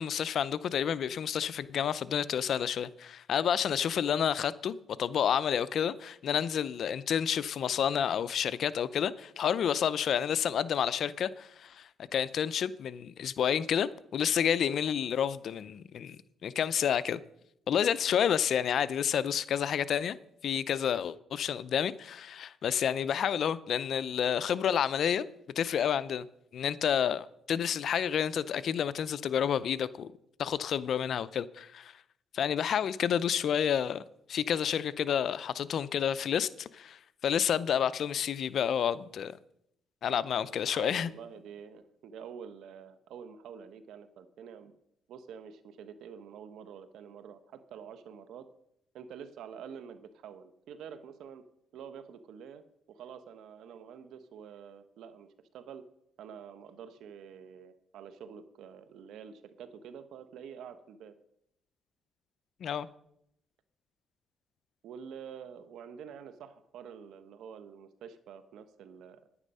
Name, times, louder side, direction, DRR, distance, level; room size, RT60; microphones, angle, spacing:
voice 1, 0.0-17.2 17.7-20.2 20.4-25.3 25.6-26.3 26.5-30.1 30.4-31.9 32.3-34.0 34.3-39.4 40.0-41.1 62.6-62.9, left 8 dB, 65° left, 0.5 m, -30 dB
voice 2, 40.1-44.7 45.1-48.5 48.9-51.4 51.7-55.3 55.5-55.8 56.2-61.1 64.8-69.2, right 7 dB, 80° right, 1.1 m, -47 dB
9.9 x 9.8 x 5.5 m
cardioid pair, 90°, 0 cm